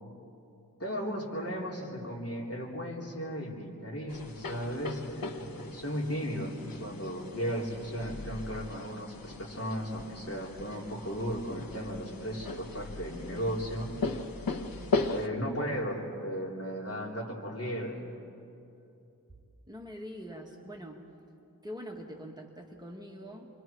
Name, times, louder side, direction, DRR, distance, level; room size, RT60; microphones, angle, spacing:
voice 1, 0.8-14.0 15.1-18.0, equal, 45° left, -3 dB, 4.0 m, -35 dB
sound 1, 4.1-15.3, left 3 dB, 85° left, 1.1 m, -38 dB
voice 2, 14.5-15.0 19.7-21.0 21.6-23.5, equal, 10° right, 0 dB, 1.8 m, -44 dB
29.0 x 24.0 x 4.7 m, 2.7 s
wide cardioid pair, 65°, 34 cm